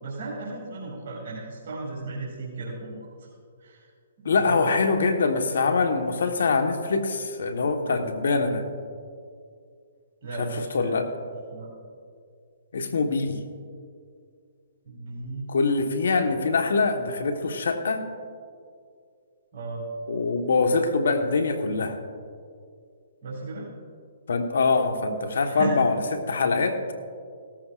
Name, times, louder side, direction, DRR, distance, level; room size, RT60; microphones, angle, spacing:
voice 1, 0.0-3.3 3.6-3.9 4.2-4.6 10.2-11.1 11.5-11.7 14.8-15.5 19.5-19.8 23.2-23.7 25.5-25.8, right 3 dB, 60° right, -5 dB, 2.7 m, -35 dB
voice 2, 4.2-8.6 10.4-11.1 12.7-13.4 15.5-18.0 20.1-22.0 24.3-26.0 26.3-26.8, left 4 dB, 75° left, 6 dB, 1.3 m, -24 dB
17.5 x 13.5 x 2.5 m, 2.2 s
hypercardioid pair, 140°, 0 cm